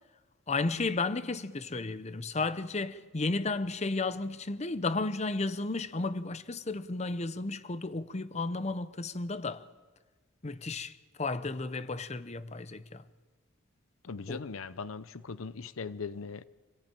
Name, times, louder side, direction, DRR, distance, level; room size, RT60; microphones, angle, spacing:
voice 1, 0.5-9.7 10.4-13.0 14.3-14.4, left 3 dB, 35° left, 0.8 m, -33 dB
voice 2, 14.0-16.5, left 5 dB, 85° left, 0.7 m, -39 dB
26.5 x 18.5 x 9.0 m
head